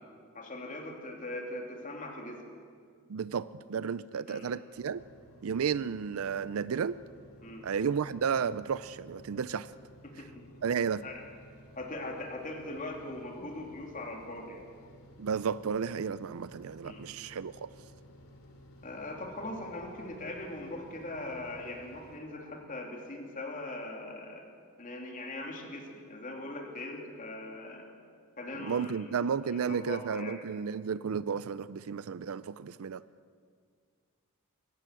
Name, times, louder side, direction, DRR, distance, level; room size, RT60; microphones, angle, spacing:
voice 1, 0.3-2.4 4.3-4.5 7.4-7.7 10.0-10.5 11.0-11.3 11.8-14.6 16.8-17.0 18.8-24.4 24.8-27.8 28.4-29.1 29.5-30.4, left 2 dB, 35° left, 2 dB, 2.9 m, -41 dB
voice 2, 3.1-5.0 5.4-7.0 7.6-9.7 10.6-11.0 15.2-17.7 28.6-33.0, right 6 dB, 75° right, 17 dB, 0.4 m, -32 dB
sound 1, 4.7-22.2, equal, 90° left, 3.0 m, -55 dB
21.5 x 17.0 x 7.5 m, 2.1 s
head